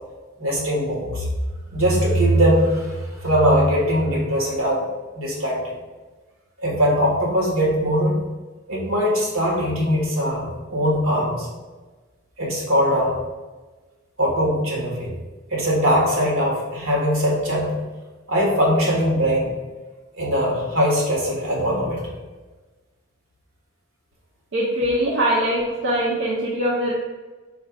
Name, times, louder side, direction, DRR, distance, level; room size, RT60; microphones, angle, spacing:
voice 1, 0.4-1.3 1.7-4.8 5.1-5.7 6.6-8.2 8.7-11.5 12.4-13.2 14.2-15.1 15.5-17.7 18.3-19.5 20.1-22.0, equal, 80° right, -3 dB, 1.4 m, -21 dB
voice 2, 24.5-26.9, equal, 60° right, -4 dB, 0.7 m, -22 dB
4.5 x 2.4 x 4.7 m, 1.3 s
head